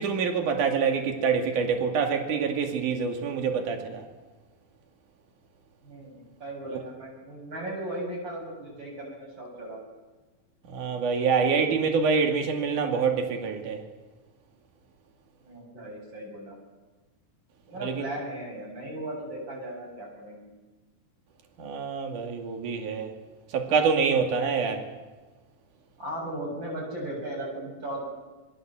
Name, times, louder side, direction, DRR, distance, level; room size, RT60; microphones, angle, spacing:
voice 1, 0.0-4.0 10.7-13.8 17.8-18.1 21.6-23.1 23.5-24.8, right 5 dB, 75° right, 4 dB, 3.9 m, -26 dB
voice 2, 5.8-9.8 11.4-11.7 15.4-16.6 17.7-20.5 26.0-28.0, right 1 dB, 35° right, 0 dB, 7.8 m, -37 dB
27.0 x 22.5 x 7.7 m, 1.2 s
omnidirectional pair, 3.7 m